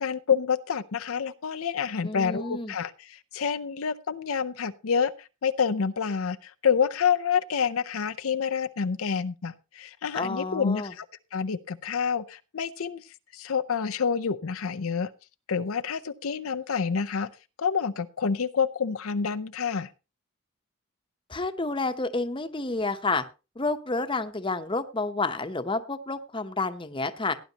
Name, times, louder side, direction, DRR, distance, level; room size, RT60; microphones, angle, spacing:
voice 1, 0.0-11.1 11.3-13.0 13.3-15.1 15.5-17.3 17.6-19.9, left 6 dB, 80° left, 10 dB, 0.6 m, -28 dB
voice 2, 2.0-2.7 10.1-10.9 21.3-23.2 23.6-27.3, left 3 dB, 25° left, 8 dB, 0.9 m, -29 dB
17.5 x 10.0 x 2.9 m, 0.30 s
head